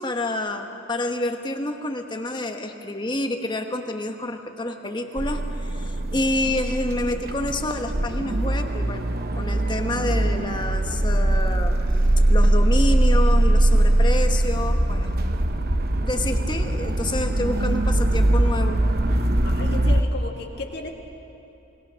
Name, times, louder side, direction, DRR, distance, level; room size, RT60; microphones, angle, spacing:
voice 1, 0.0-11.8 12.3-15.4 16.0-18.8, left 2 dB, 25° left, 5 dB, 1.2 m, -28 dB
sound 1, 5.2-20.0, right 1 dB, 50° right, 1.0 m, -21 dB
voice 2, 13.7-14.0 19.1-20.9, left 2 dB, 55° left, 2 dB, 2.1 m, -35 dB
28.0 x 20.5 x 6.3 m, 3.0 s
head